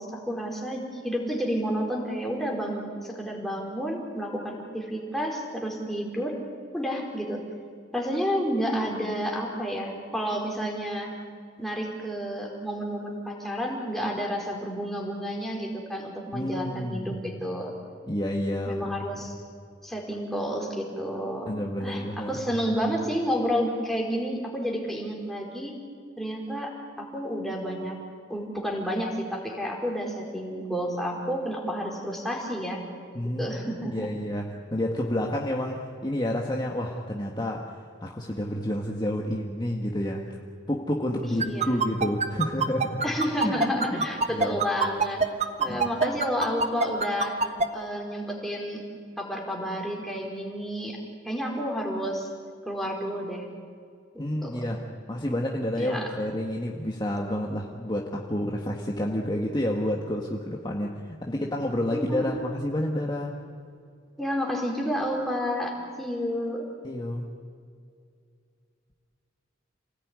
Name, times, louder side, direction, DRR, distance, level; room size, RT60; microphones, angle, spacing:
voice 1, 0.0-6.3 6.7-7.4 7.9-11.1 11.6-17.7 18.7-19.3 19.8-21.5 21.8-25.7 26.2-28.0 28.3-32.9 33.2-34.1 41.2-41.6 43.0-47.4 47.7-48.8 49.2-51.0 51.2-52.3 52.6-53.5 54.4-54.6 55.8-56.1 61.9-62.4 64.2-66.7, equal, ahead, -1 dB, 4.5 m, -30 dB
voice 2, 16.3-17.2 18.1-18.8 21.5-22.4 33.1-33.6 33.9-37.8 38.0-40.4 40.7-43.0 43.4-43.6 43.9-44.6 45.7-45.9 54.2-63.4 66.8-67.2, left 1 dB, 25° left, 0 dB, 1.7 m, -29 dB
sound 1, 41.4-47.7, right 4 dB, 35° right, 1.4 m, -23 dB
28.5 x 19.0 x 9.7 m, 2.3 s
head